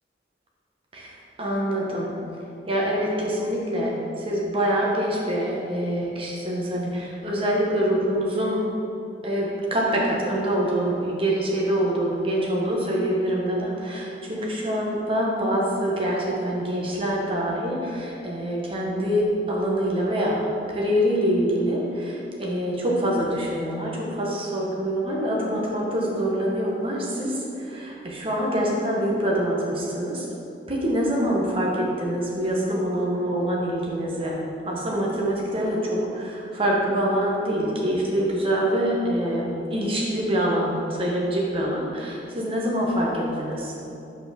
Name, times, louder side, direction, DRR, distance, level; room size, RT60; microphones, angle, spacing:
voice 1, 0.9-2.1 2.7-8.6 9.2-30.2 30.7-34.4 34.7-43.7, equal, 30° right, -3 dB, 1.2 m, -25 dB
5.7 x 4.6 x 6.3 m, 2.9 s
head